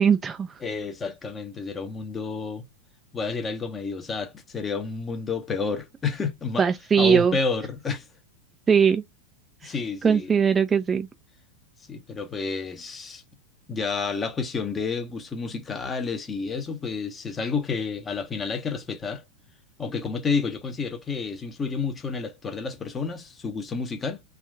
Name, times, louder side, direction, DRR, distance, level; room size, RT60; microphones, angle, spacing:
voice 1, 0.0-0.6 6.6-7.4 8.7-9.0 9.6-9.7 10.0-11.1, right 6 dB, 20° right, 0.4 m, -20 dB
voice 2, 0.6-2.6 3.1-6.7 7.0-8.1 9.6-10.3 11.9-13.2 13.7-19.2 19.8-24.2, left 4 dB, 20° left, 0.8 m, -30 dB
3.6 x 2.4 x 2.2 m
figure-of-eight pair, 90°, 0 cm